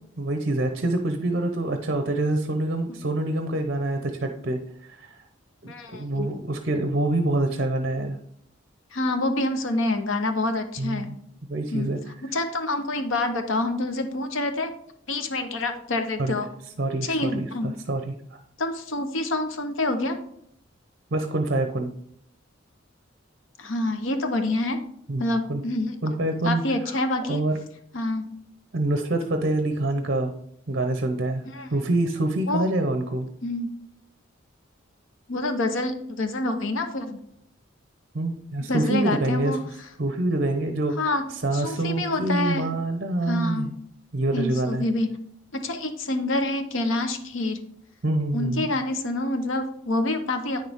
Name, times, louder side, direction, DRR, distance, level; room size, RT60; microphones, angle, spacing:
voice 1, 0.2-5.1 5.6-8.2 10.8-11.1 11.5-12.0 16.2-16.3 16.8-18.4 21.1-21.9 25.1-25.2 25.5-25.6 26.0-27.0 27.3-27.6 28.7-30.3 30.7-31.5 31.7-33.3 38.1-39.6 40.0-43.7 44.1-44.8 48.0-48.7, right 2 dB, 55° right, 6 dB, 0.8 m, -26 dB
voice 2, 5.6-6.4 8.9-11.1 11.7-11.9 12.3-14.7 15.1-16.5 17.0-17.7 18.6-20.2 23.6-24.8 25.2-25.9 26.4-27.4 27.9-28.2 31.4-31.7 32.5-32.6 33.4-33.7 35.3-37.2 38.7-39.6 41.0-41.2 41.5-42.7 43.2-43.7 44.3-45.1 45.6-47.6 48.3-50.7, left 2 dB, 80° left, 7 dB, 1.0 m, -27 dB
9.2 x 6.6 x 3.6 m, 0.70 s
head